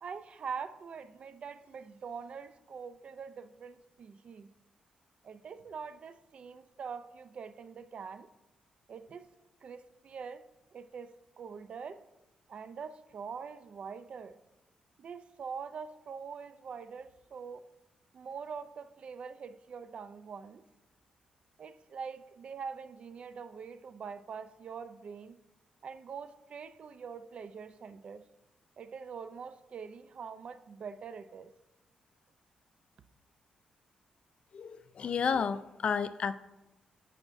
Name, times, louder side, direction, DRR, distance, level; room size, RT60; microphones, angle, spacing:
voice 1, 0.0-4.5 5.2-8.3 8.9-9.3 9.6-10.5 10.7-12.0 12.5-14.4 15.0-17.6 18.1-20.6 21.6-25.4 25.8-28.3 28.8-31.5, right 6 dB, 50° right, 0.4 m, -44 dB
voice 2, 34.5-36.3, left 6 dB, 50° left, 0.4 m, -31 dB
10.5 x 8.5 x 2.6 m
cardioid pair, 135°, 3 cm